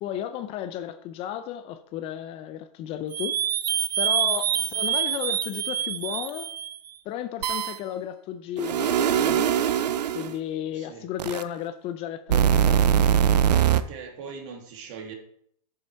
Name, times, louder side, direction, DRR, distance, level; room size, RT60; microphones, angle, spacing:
voice 1, 0.0-3.4 4.0-6.5 7.1-9.5 10.1-13.1, left 10 dB, 30° left, 0.5 m, -34 dB
sound 1, 3.1-6.8 7.4-7.8 8.6-10.3 11.2-11.4 12.3-13.8, right 9 dB, 85° right, 0.6 m, -23 dB
voice 2, 10.7-11.0 13.7-15.1, right 5 dB, 50° right, 2.2 m, -40 dB
8.3 x 6.3 x 4.4 m
hypercardioid pair, 130°, 21 cm